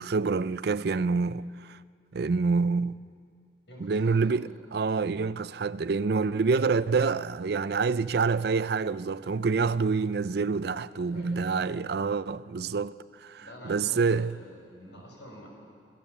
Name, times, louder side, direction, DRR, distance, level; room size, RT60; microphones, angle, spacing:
voice 1, 0.0-1.8 2.1-3.0 3.8-12.9 13.2-14.3, right 4 dB, 60° right, 0.5 m, -27 dB
voice 2, 3.7-4.5 10.9-11.6 13.4-15.5, left 1 dB, 85° left, 6.4 m, -47 dB
26.0 x 16.5 x 7.2 m
head